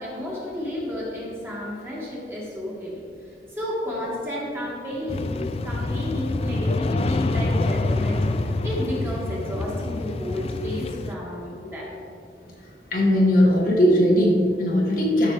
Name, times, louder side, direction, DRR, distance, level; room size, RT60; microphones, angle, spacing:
voice 1, 0.0-3.0 3.5-11.9, left 1 dB, 15° right, -6 dB, 2.0 m, -31 dB
sound 1, 5.1-11.1, left 2 dB, 35° left, 0.3 m, -26 dB
voice 2, 12.9-15.3, equal, 55° left, -2 dB, 1.3 m, -19 dB
13.0 x 6.1 x 3.3 m, 2.5 s
head